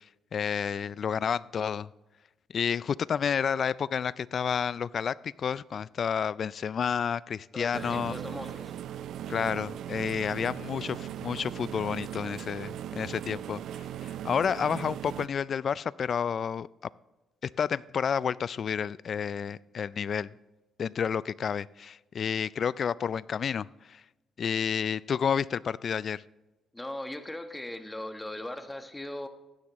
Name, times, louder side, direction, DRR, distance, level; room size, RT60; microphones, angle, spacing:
voice 1, 0.3-1.9 2.5-8.2 9.3-16.7 17.4-20.3 20.8-24.0 24.4-26.2, left 7 dB, 50° left, 20 dB, 0.3 m, -30 dB
voice 2, 7.5-8.7 26.7-29.3, left 1 dB, 10° left, 7 dB, 1.2 m, -39 dB
Tumble dryer, 7.7-15.3, right 11 dB, 75° right, 0.4 m, -38 dB
16.0 x 11.5 x 3.0 m, 1.1 s
cardioid pair, 90°, 0 cm